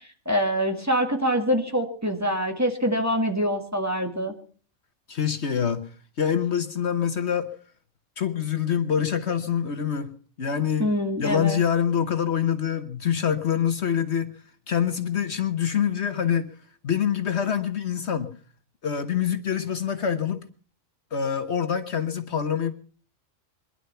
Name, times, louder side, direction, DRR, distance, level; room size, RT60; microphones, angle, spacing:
voice 1, 0.3-4.3 10.8-11.6, equal, 10° right, 4 dB, 1.8 m, -25 dB
voice 2, 5.1-5.9 6.2-7.5 8.2-10.1 10.4-10.9 11.2-14.4 14.7-16.5 16.8-18.3 18.8-20.4 21.1-22.7, left 8 dB, 60° left, 9 dB, 1.3 m, -25 dB
22.5 x 11.0 x 5.7 m, 0.43 s
omnidirectional pair, 1.4 m